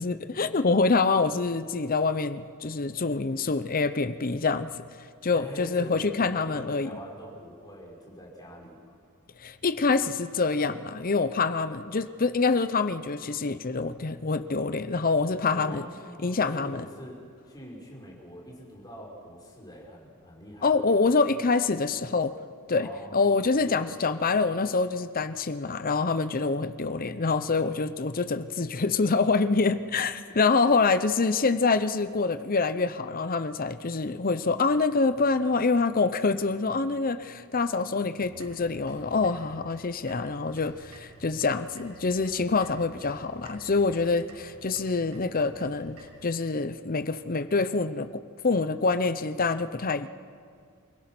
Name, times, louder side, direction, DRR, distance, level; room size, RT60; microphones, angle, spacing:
voice 1, 0.0-4.7 5.2-6.9 9.4-15.8 16.2-16.9 20.6-22.3 22.7-48.1 48.4-50.1, left 4 dB, 40° left, 11 dB, 0.7 m, -26 dB
voice 2, 5.3-9.0 15.5-21.2 22.7-23.7, equal, 20° left, -3 dB, 5.0 m, -44 dB
sound 1, 38.2-46.3, right 1 dB, 85° right, 6.7 m, -51 dB
28.0 x 16.5 x 6.1 m, 2.2 s
head